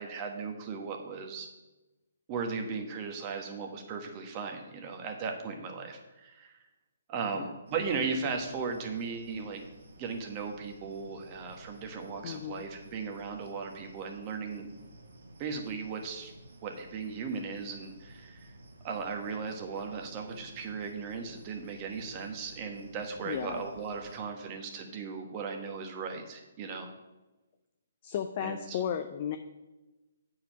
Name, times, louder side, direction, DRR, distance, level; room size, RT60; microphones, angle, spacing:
voice 1, 0.0-1.5 2.3-6.6 7.1-9.6 10.0-14.7 15.4-16.3 16.6-18.5 18.8-26.9 28.4-28.8, right 5 dB, 30° right, 3 dB, 1.4 m, -37 dB
sound 1, 7.7-24.2, right 1 dB, 75° right, 1.3 m, -53 dB
voice 2, 12.2-12.6 23.3-23.6 28.0-29.4, left 9 dB, 40° left, 7 dB, 0.5 m, -34 dB
8.9 x 4.7 x 5.9 m, 1.1 s
hypercardioid pair, 140°, 0 cm